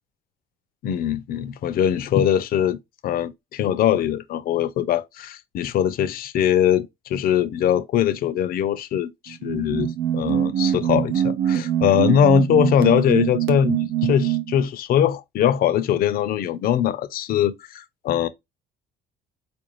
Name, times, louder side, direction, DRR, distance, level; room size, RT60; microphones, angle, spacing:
voice 1, 0.8-18.3, left 9 dB, 60° left, 0.5 m, -22 dB
sound 1, 9.3-14.6, right 10 dB, 90° right, 0.7 m, -23 dB
4.4 x 2.5 x 3.0 m
cardioid pair, 110°, 17 cm